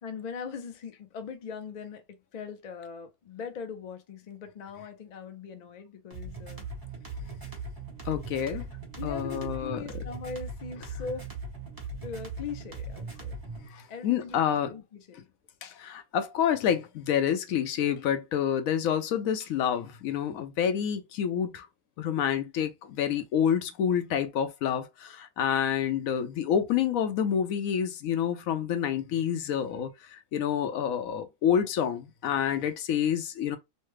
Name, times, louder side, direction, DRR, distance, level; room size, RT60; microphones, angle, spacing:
voice 1, 0.0-6.6 9.0-11.3 12.0-13.4 13.9-15.2, left 5 dB, 55° left, 0.5 m, -40 dB
sound 1, 6.1-13.7, right 3 dB, 20° right, 0.8 m, -39 dB
voice 2, 8.0-8.7 9.0-10.0 13.7-14.7 15.6-21.7 22.0-33.6, left 8 dB, 75° left, 1.0 m, -28 dB
3.2 x 2.1 x 3.1 m
omnidirectional pair, 1.5 m